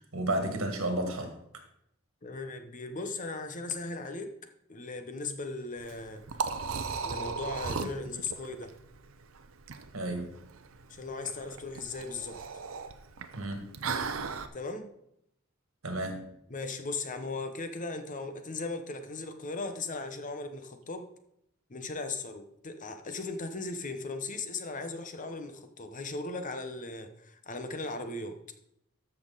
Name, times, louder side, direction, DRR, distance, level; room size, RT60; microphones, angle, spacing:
voice 1, 0.0-1.4 9.9-10.4 13.3-13.7 15.8-16.3, right 1 dB, 85° right, 1.9 m, -32 dB
voice 2, 2.2-4.3 4.7-6.3 7.0-8.7 10.9-12.4 14.5-14.9 16.5-21.1 21.7-28.4, left 3 dB, 40° left, 1.0 m, -37 dB
Liquid, 5.8-14.5, right 5 dB, 70° right, 0.7 m, -37 dB
13.5 x 6.0 x 4.0 m
head